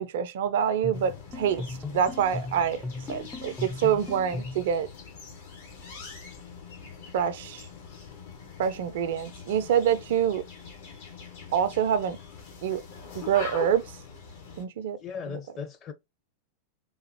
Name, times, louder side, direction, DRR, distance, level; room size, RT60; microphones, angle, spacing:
voice 1, 0.0-1.6 1.9-2.8 3.1-4.9 7.1-7.7 8.6-10.4 11.5-12.2 12.6-12.8 13.2-13.8 14.6-15.0, right 8 dB, 55° right, 0.4 m, -26 dB
sound 1, 0.8-4.7, left 3 dB, 10° left, 0.5 m, -37 dB
sound 2, 0.9-14.6, left 5 dB, 55° left, 1.3 m, -43 dB
voice 2, 15.0-15.9, left 6 dB, 30° left, 0.9 m, -37 dB
3.7 x 2.4 x 2.9 m
figure-of-eight pair, 90°, 0 cm